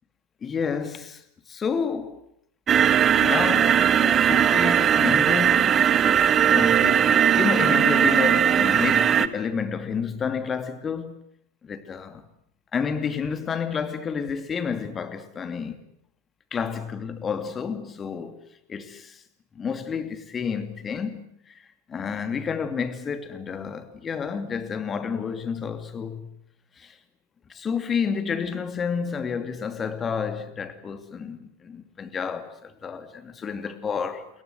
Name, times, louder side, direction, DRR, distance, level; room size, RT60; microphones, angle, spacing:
voice 1, 0.4-2.2 3.0-11.1 11.6-12.2 12.7-15.8 16.5-18.4 18.7-19.2 19.5-26.3 26.8-27.0 27.5-34.3, left 6 dB, 20° left, 2.6 m, -30 dB
sound 1, 2.7-9.3, right 9 dB, 25° right, 1.2 m, -19 dB
29.0 x 22.5 x 8.0 m
figure-of-eight pair, 90°, 0 cm